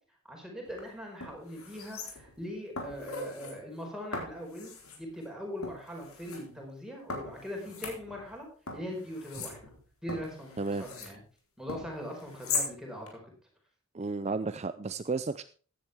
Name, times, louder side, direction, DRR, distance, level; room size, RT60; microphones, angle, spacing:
voice 1, 0.3-8.5 8.7-9.7 10.0-11.2 11.6-13.2, equal, 5° right, 0 dB, 4.6 m, -41 dB
sound 1, 0.7-0.8 1.2-2.4 2.8-3.5 4.1-5.0 5.6-6.4 7.1-8.4 8.7-11.2 11.7-12.7 13.1-13.2, left 4 dB, 85° left, 3.8 m, -39 dB
voice 2, 13.9-15.4, right 3 dB, 30° right, 12 dB, 0.4 m, -32 dB
15.5 x 10.5 x 3.5 m, 0.40 s
head